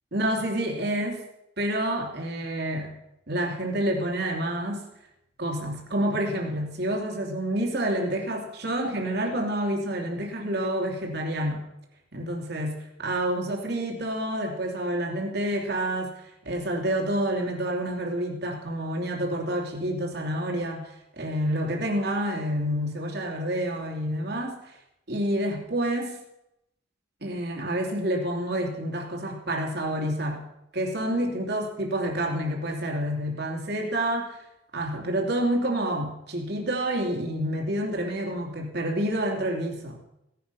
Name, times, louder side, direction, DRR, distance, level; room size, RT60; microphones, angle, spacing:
voice 1, 0.1-1.2 1.6-3.0 3.3-4.9 5.4-11.7 12.1-12.7 13.0-16.1 16.4-20.9 21.2-24.6 25.1-26.2 27.2-30.5 30.7-34.4 34.7-40.0, right 1 dB, 60° right, 1 dB, 2.9 m, -28 dB
17.0 x 10.5 x 5.6 m, 0.86 s
head